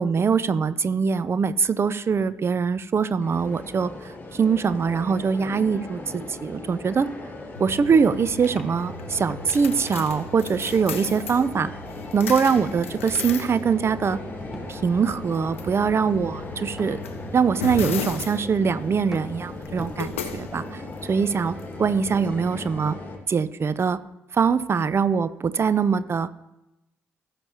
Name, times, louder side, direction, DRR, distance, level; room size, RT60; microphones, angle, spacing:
voice 1, 0.0-7.1 7.6-11.7 12.1-14.2 14.7-17.0 17.3-23.0 23.3-24.0 24.3-26.3, right 6 dB, 40° right, 15 dB, 0.6 m, -23 dB
sound 1, 3.2-23.2, left 2 dB, 25° left, 1.9 m, -38 dB
sound 2, 7.6-22.3, left 6 dB, 85° left, 0.5 m, -38 dB
sound 3, 10.9-11.2 12.6-13.6 14.4-15.2 15.5-15.9 16.8-17.3 18.0-18.6 19.1-20.6, equal, 5° right, 1.2 m, -43 dB
18.0 x 6.9 x 2.9 m, 0.91 s
hypercardioid pair, 45°, 7 cm